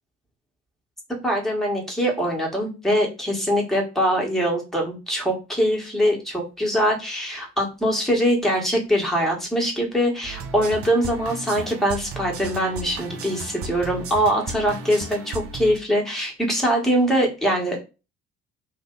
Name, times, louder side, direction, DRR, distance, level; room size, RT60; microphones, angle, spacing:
voice 1, 1.2-17.8, equal, ahead, -1 dB, 1.2 m, -23 dB
sound 1, 10.2-15.8, right 3 dB, 45° right, 0.6 m, -35 dB
2.6 x 2.1 x 3.6 m, 0.29 s
figure-of-eight pair, 50°, 33 cm